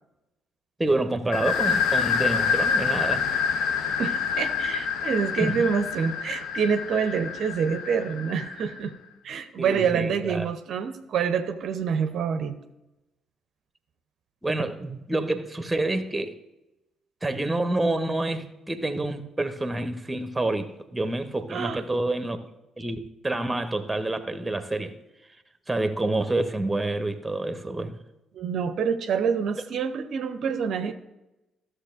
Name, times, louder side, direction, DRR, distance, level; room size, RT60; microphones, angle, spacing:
voice 1, 0.8-3.3 5.4-5.7 9.6-10.4 14.4-16.4 17.2-22.4 22.8-25.0 25.7-28.0, right 2 dB, 10° right, 1.0 m, -28 dB
sound 1, 1.3-8.8, left 6 dB, 60° left, 0.6 m, -27 dB
voice 2, 4.0-8.9 9.2-12.6 21.5-21.8 28.3-30.9, right 6 dB, 55° right, 0.6 m, -27 dB
15.0 x 6.6 x 2.6 m
figure-of-eight pair, 45°, 0 cm